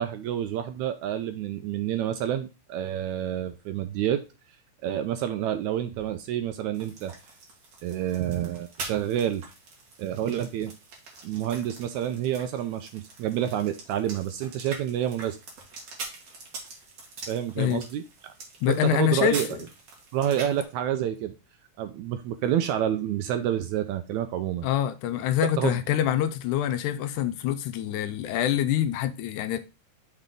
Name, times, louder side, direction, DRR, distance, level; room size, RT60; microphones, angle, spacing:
voice 1, 0.0-4.2 4.8-7.1 7.8-9.4 10.0-10.7 11.2-15.4 17.3-18.3 18.7-19.6 20.1-21.3 21.8-24.7 25.6-25.8, right 10 dB, 80° right, 1.8 m, -28 dB
sound 1, 6.7-20.6, right 3 dB, 60° right, 3.0 m, -44 dB
voice 2, 18.6-19.6 24.6-29.6, left 11 dB, 80° left, 2.0 m, -25 dB
6.1 x 4.3 x 5.0 m
omnidirectional pair, 3.7 m